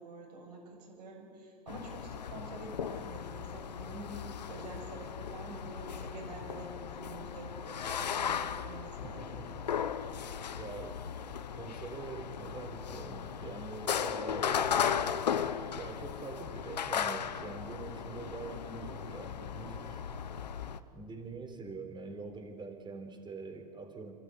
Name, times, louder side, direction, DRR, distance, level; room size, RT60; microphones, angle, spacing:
voice 1, 0.0-9.7 10.2-10.4 18.5-18.8, right 2 dB, 75° right, 1 dB, 7.6 m, -47 dB
sound 1, 1.7-20.8, left 8 dB, 90° left, 1.0 m, -36 dB
voice 2, 9.0-9.5 10.5-11.0 11.6-14.8 15.8-20.0 20.9-24.1, right 4 dB, 20° right, 5 dB, 4.1 m, -44 dB
29.0 x 13.5 x 9.9 m, 2.4 s
hypercardioid pair, 100°, 21 cm